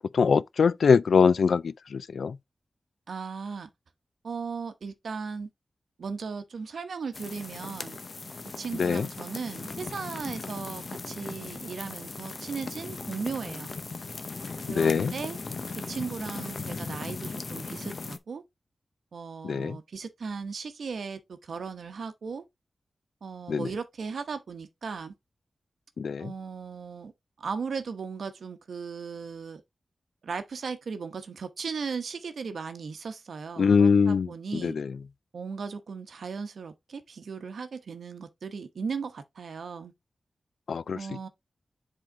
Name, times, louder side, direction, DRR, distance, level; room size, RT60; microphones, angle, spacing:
voice 1, 0.1-2.4 8.8-9.1 14.8-15.1 19.4-19.8 23.5-23.7 26.0-26.3 33.6-34.3 34.5-34.9 40.7-41.0, left 5 dB, 80° left, 0.3 m, -23 dB
voice 2, 3.1-3.7 4.2-5.5 6.0-8.0 8.6-13.7 14.7-15.4 15.7-18.4 19.1-22.4 23.2-25.1 26.2-27.1 27.4-29.6 30.2-34.8 35.3-39.9 40.9-41.3, right 5 dB, 75° right, 0.9 m, -37 dB
sound 1, 7.1-18.2, left 3 dB, 45° left, 0.7 m, -38 dB
7.8 x 3.8 x 3.6 m
wide cardioid pair, 150°, 0 cm